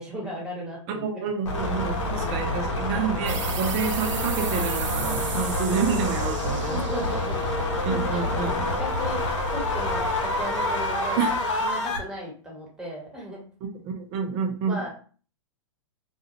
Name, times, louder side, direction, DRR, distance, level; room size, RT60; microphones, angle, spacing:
voice 1, 0.0-1.0 2.1-2.3 6.5-7.4 7.9-11.3 11.6-13.4 14.7-14.9, equal, 5° right, 1.3 m, -36 dB
voice 2, 0.9-7.1 7.8-8.6 11.2-11.3 13.8-14.9, right 6 dB, 40° right, 0.7 m, -29 dB
sound 1, 1.4-12.0, left 1 dB, 70° left, 0.9 m, -27 dB
sound 2, 3.3-8.5, right 6 dB, 75° right, 0.7 m, -36 dB
2.4 x 2.3 x 2.8 m
hypercardioid pair, 130°, 16 cm